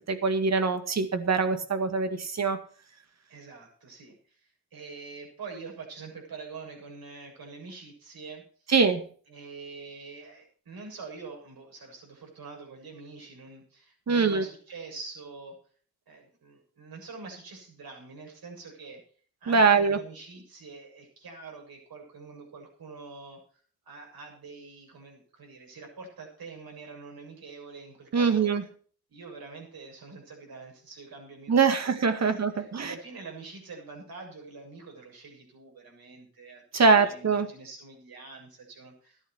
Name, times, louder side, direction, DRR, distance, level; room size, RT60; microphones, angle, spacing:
voice 1, 0.1-2.6 8.7-9.0 14.1-14.4 19.5-20.0 28.1-28.6 31.5-32.9 36.7-37.5, right 5 dB, 40° right, 9 dB, 2.0 m, -23 dB
voice 2, 3.3-4.4 4.7-8.7 9.3-15.6 16.1-19.0 19.4-23.4 23.9-28.5 29.1-39.3, right 4 dB, 60° right, 2 dB, 7.3 m, -45 dB
14.0 x 11.0 x 4.6 m, 0.43 s
cardioid pair, 110°, 40 cm